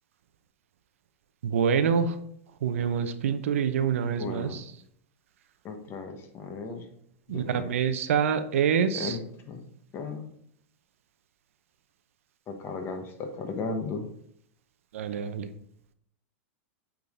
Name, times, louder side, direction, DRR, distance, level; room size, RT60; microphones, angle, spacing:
voice 1, 1.4-2.2 2.6-4.6 7.3-9.2 14.9-15.5, right 7 dB, 80° right, 10 dB, 0.7 m, -26 dB
voice 2, 4.0-4.6 5.6-6.9 7.3-7.7 8.9-9.6 9.9-10.3 12.5-14.1, left 4 dB, 35° left, 5 dB, 1.3 m, -36 dB
8.7 x 3.8 x 3.9 m, 0.68 s
hypercardioid pair, 120°, 7 cm